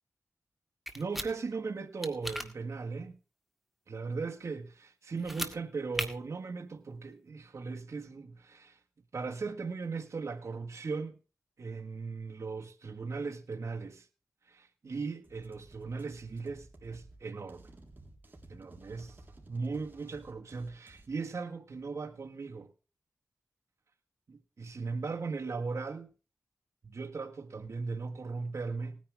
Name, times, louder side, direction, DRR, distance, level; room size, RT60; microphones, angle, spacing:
sound 1, 0.9-1.3 2.0-2.5 5.2-5.5 5.9-6.1, equal, ahead, 1.9 m, -36 dB
voice 1, 0.9-3.2 3.9-8.8 9.1-11.2 11.6-14.1 14.5-17.7 18.5-19.2 19.5-22.7 24.3-26.1 26.8-29.0, right 4 dB, 65° right, 1.5 m, -38 dB
sound 2, 15.2-21.1, right 2 dB, 35° right, 3.6 m, -55 dB
19.0 x 10.0 x 3.5 m
wide cardioid pair, 80°, 5 cm